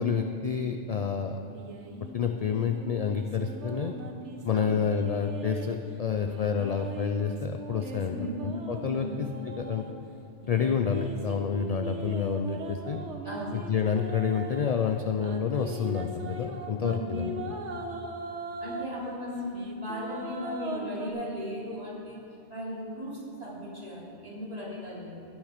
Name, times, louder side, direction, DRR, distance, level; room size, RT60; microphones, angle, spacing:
voice 1, 0.0-1.4 2.1-3.9 4.4-8.1 8.4-9.8 10.5-13.0 13.5-17.5, left 6 dB, 60° left, 5 dB, 0.4 m, -29 dB
sound 1, 1.5-5.7 6.2-9.9 10.4-14.7 15.2-18.9 19.3-21.1, right 2 dB, 75° right, 1.3 m, -40 dB
voice 2, 8.1-8.5 9.0-9.2 13.2-13.7 16.8-17.0 18.6-22.2 22.5-25.1, left 1 dB, 35° right, -7 dB, 3.2 m, -37 dB
18.0 x 6.4 x 5.0 m, 2.6 s
omnidirectional pair, 1.2 m